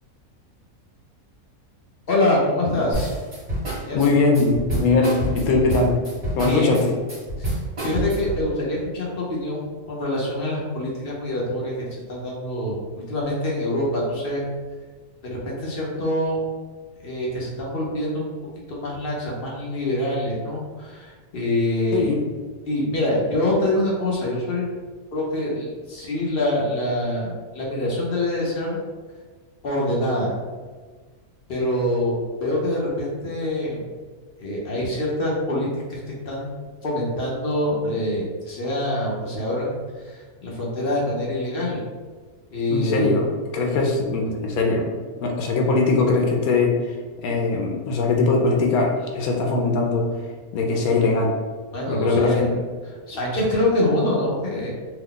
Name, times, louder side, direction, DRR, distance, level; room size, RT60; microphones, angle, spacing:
voice 1, 2.1-3.1 3.9-4.2 6.4-6.8 7.4-7.6 7.8-12.8 13.1-14.4 15.2-16.4 17.0-18.3 18.7-22.1 22.6-24.6 25.1-28.8 29.6-30.3 31.5-33.8 34.4-36.0 36.2-39.8 40.0-41.8 42.5-43.2 51.7-52.6 53.1-54.7, left 1 dB, 50° left, -4 dB, 0.8 m, -25 dB
sound 1, 2.9-8.4, right 1 dB, 20° right, 1.3 m, -28 dB
voice 2, 3.9-6.0 6.4-6.9 21.9-22.2 42.7-43.2 43.5-44.9 45.2-50.1 50.5-51.4 51.9-52.5, left 3 dB, 75° left, 1 dB, 1.0 m, -21 dB
2.8 x 2.2 x 3.7 m, 1.4 s
omnidirectional pair, 1.6 m